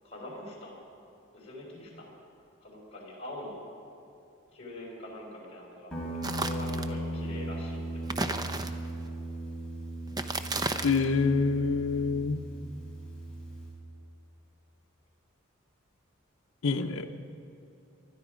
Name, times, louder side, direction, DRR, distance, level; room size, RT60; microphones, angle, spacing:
voice 1, 0.0-0.8 1.3-2.1 2.6-3.6 4.5-8.4, left 1 dB, 30° left, -3 dB, 4.8 m, -44 dB
Guitar, 5.9-13.7, right 1 dB, 5° left, 4.3 m, -37 dB
sound 1, 6.2-6.9 8.0-9.1 10.1-11.1, right 2 dB, 20° right, 0.6 m, -33 dB
voice 2, 10.8-12.4 16.6-17.1, left 4 dB, 85° left, 3 dB, 0.7 m, -26 dB
20.5 x 13.0 x 5.1 m, 2.8 s
head